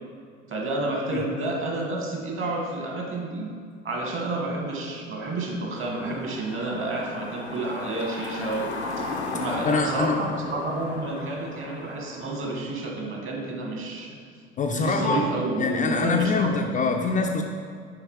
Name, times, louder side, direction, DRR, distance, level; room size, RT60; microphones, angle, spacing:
voice 1, 0.5-3.5 3.8-8.7 9.3-14.2 14.7-16.9, right 2 dB, 40° right, 0 dB, 1.6 m, -30 dB
sound 1, 5.7-12.6, left 3 dB, 90° left, 0.7 m, -36 dB
voice 2, 9.7-10.2 14.6-15.3 15.6-17.4, left 4 dB, 25° left, 3 dB, 0.4 m, -24 dB
5.7 x 5.2 x 4.8 m, 2.2 s
figure-of-eight pair, 65°, 32 cm